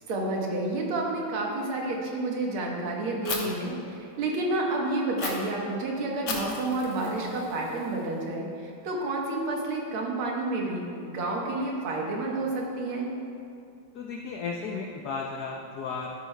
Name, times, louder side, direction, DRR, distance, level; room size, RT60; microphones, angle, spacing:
voice 1, 0.1-13.1, right 2 dB, 85° right, -1 dB, 2.0 m, -30 dB
Fire, 3.3-3.4 5.2-5.3 6.3-8.2, left 4 dB, 60° left, 1.5 m, -36 dB
voice 2, 13.9-16.1, left 5 dB, 75° left, 0 dB, 0.9 m, -34 dB
12.0 x 9.3 x 2.2 m, 2.5 s
omnidirectional pair, 2.3 m